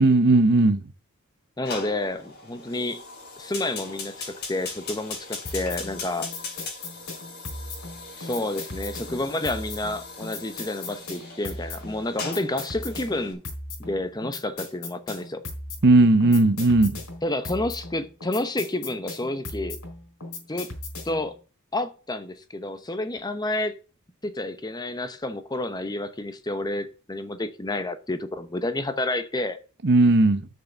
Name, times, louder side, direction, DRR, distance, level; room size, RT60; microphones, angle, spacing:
voice 1, 0.0-0.8 15.8-17.0 29.8-30.5, right 2 dB, 55° right, 0.9 m, -17 dB
Fire, 1.6-13.3, left 4 dB, 50° left, 3.8 m, -39 dB
voice 2, 1.6-3.0 3.4-6.3 8.2-13.4 13.8-15.4 17.2-19.8 20.5-20.7 21.0-21.3 21.7-23.7 24.2-29.6, left 2 dB, 20° left, 0.8 m, -30 dB
sound 1, 5.5-21.3, left 2 dB, 75° left, 4.1 m, -37 dB
6.7 x 6.6 x 7.2 m
head